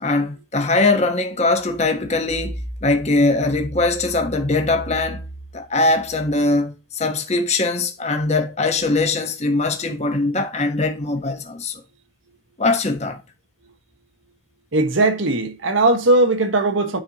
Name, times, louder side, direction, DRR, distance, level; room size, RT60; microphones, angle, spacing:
voice 1, 0.0-5.2 5.5-11.8 12.6-13.2, left 2 dB, 35° left, 1.1 m, -21 dB
voice 2, 14.7-17.0, right 2 dB, 80° right, 1.3 m, -18 dB
9.4 x 4.4 x 2.9 m
head